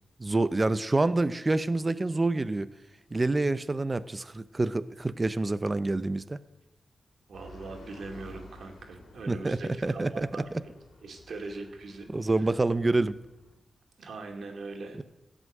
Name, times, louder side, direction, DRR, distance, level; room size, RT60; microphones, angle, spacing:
voice 1, 0.2-2.7 3.1-6.4 9.3-10.6 12.1-13.1, right 2 dB, 25° right, 14 dB, 0.6 m, -27 dB
sound 1, 7.3-13.6, left 2 dB, 90° left, 3.0 m, -52 dB
voice 2, 7.3-10.7 11.0-12.5 14.0-15.0, right 3 dB, 75° right, 3 dB, 2.2 m, -41 dB
16.5 x 6.2 x 9.0 m, 0.97 s
wide cardioid pair, 120°, 0 cm